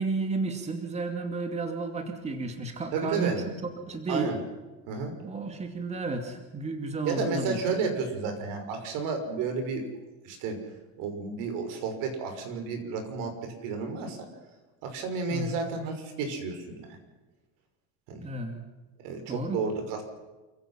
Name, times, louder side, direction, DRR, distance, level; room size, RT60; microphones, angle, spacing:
voice 1, 0.0-3.4 3.8-4.3 5.2-7.6 15.3-15.6 18.2-18.6 19.3-19.6, right 3 dB, 20° right, 6 dB, 2.5 m, -32 dB
voice 2, 2.9-3.5 4.1-4.4 4.9-5.1 7.0-9.9 10.2-10.6 11.0-14.3 14.8-17.0 18.1-18.3 19.0-20.0, right 4 dB, 70° right, 5 dB, 5.9 m, -32 dB
28.5 x 16.0 x 5.8 m, 1.2 s
cardioid pair, 145°, 33 cm